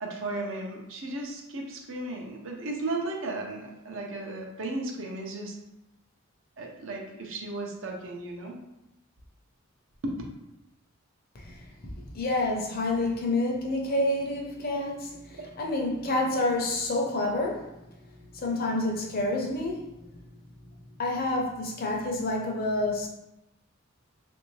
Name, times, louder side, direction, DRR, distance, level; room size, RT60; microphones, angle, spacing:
voice 1, 0.0-5.6 6.6-8.6 10.0-10.1 15.3-15.4, right 2 dB, 60° right, 1 dB, 0.6 m, -35 dB
voice 2, 11.3-17.8 18.3-20.3 21.0-23.1, left 2 dB, 45° left, 0 dB, 0.6 m, -29 dB
3.4 x 2.6 x 3.1 m, 0.87 s
head